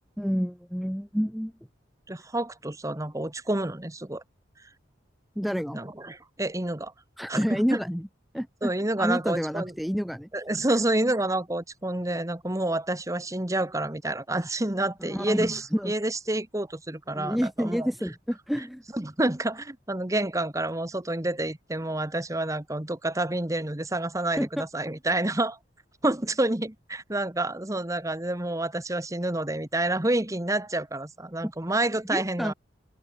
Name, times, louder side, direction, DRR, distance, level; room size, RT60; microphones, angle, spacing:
voice 1, 0.2-1.5 5.4-5.8 7.2-8.1 8.3-8.7 9.0-10.3 10.7-10.8 15.0-15.9 17.1-18.8 24.4-24.6 31.4-31.5 32.1-32.5, equal, ahead, 0.8 m, -29 dB
voice 2, 2.1-4.2 5.7-6.9 7.3-7.8 8.6-9.7 10.3-17.9 18.9-25.6 26.0-32.5, right 1 dB, 15° right, 1.2 m, -28 dB
head